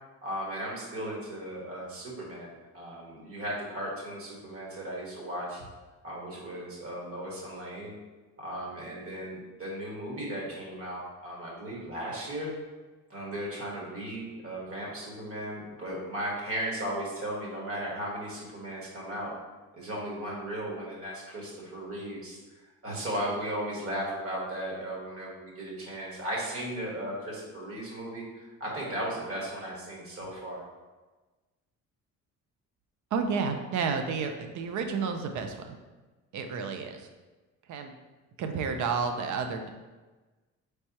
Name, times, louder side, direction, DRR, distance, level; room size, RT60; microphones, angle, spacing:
voice 1, 0.2-5.6 6.0-7.9 8.4-12.5 13.1-19.3 19.7-22.4 22.6-30.6, right 1 dB, 45° right, -3 dB, 1.5 m, -36 dB
voice 2, 33.1-35.8 36.3-37.1 37.7-37.9 38.4-39.7, right 5 dB, 65° right, 6 dB, 0.6 m, -31 dB
4.5 x 3.3 x 2.9 m, 1.2 s
cardioid pair, 100°, 32 cm